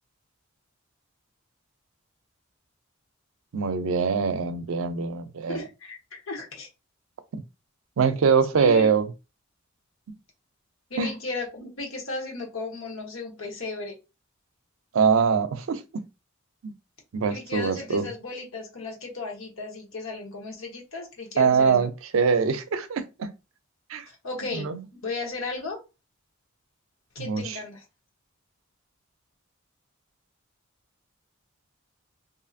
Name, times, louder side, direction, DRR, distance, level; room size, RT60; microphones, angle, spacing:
voice 1, 3.5-5.6 7.3-7.4 8.0-9.1 11.0-11.1 14.9-16.0 16.6-16.7 17.1-18.1 21.4-23.3 23.9-24.0 24.5-24.8 27.2-27.6, right 5 dB, 75° right, 0.4 m, -23 dB
voice 2, 5.5-6.7 8.6-8.9 10.9-14.0 17.3-21.9 24.1-24.8 25.0-25.8 27.1-27.8, left 3 dB, 75° left, 1.0 m, -35 dB
2.7 x 2.6 x 2.4 m
head